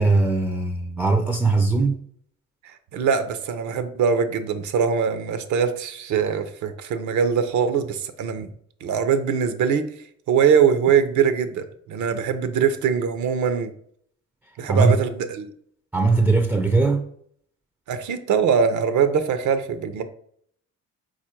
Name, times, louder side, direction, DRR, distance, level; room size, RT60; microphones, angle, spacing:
voice 1, 0.0-2.0 14.7-15.0 15.9-17.0, right 3 dB, 5° right, 0.4 m, -20 dB
voice 2, 2.9-8.5 8.8-9.8 10.3-13.7 14.6-15.5 17.9-20.0, right 7 dB, 75° right, 0.6 m, -22 dB
4.4 x 2.5 x 4.3 m
cardioid pair, 90°, 30 cm